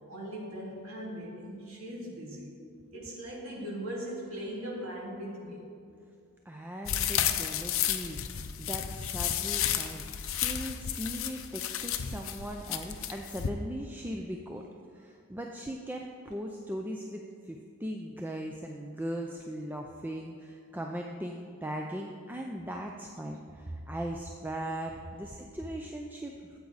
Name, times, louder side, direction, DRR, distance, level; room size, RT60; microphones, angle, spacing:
voice 1, 0.1-2.5 2.9-5.6, equal, 65° right, -4 dB, 2.6 m, -39 dB
voice 2, 6.5-8.2 8.6-14.7 14.9-26.6, equal, 10° right, 1 dB, 0.4 m, -39 dB
sound 1, 6.9-13.5, left 10 dB, 60° left, 0.6 m, -32 dB
13.5 x 8.2 x 4.0 m, 2.3 s
head